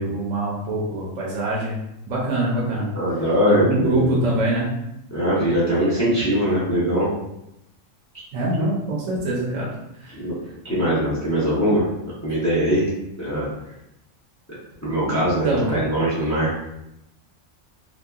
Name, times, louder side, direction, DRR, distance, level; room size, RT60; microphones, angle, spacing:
voice 1, 0.0-1.8 2.1-2.9 3.5-4.7 8.3-9.7 10.0-10.2 15.0-15.2 15.4-15.8, right 1 dB, 75° right, -4 dB, 1.0 m, -24 dB
voice 2, 2.9-4.1 5.1-7.1 10.2-10.3 10.6-11.8 12.2-12.9 13.2-13.5 14.8-16.5, equal, 20° left, -8 dB, 0.5 m, -21 dB
2.8 x 2.2 x 2.3 m, 0.86 s
omnidirectional pair, 1.3 m